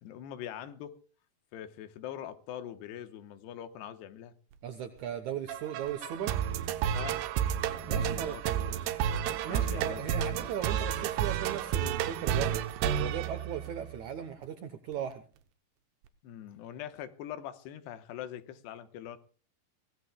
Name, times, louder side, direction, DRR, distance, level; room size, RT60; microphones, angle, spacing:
voice 1, 0.0-0.9 1.5-4.3 6.9-7.2 7.8-8.8 9.5-10.5 16.2-19.2, left 10 dB, 90° left, 9 dB, 3.2 m, -43 dB
voice 2, 4.6-6.4 7.9-8.4 9.4-15.2, right 9 dB, 75° right, 8 dB, 1.8 m, -37 dB
sound 1, 5.5-14.1, right 9 dB, 90° right, 3.1 m, -31 dB
24.0 x 17.0 x 2.3 m, 0.39 s
omnidirectional pair, 4.7 m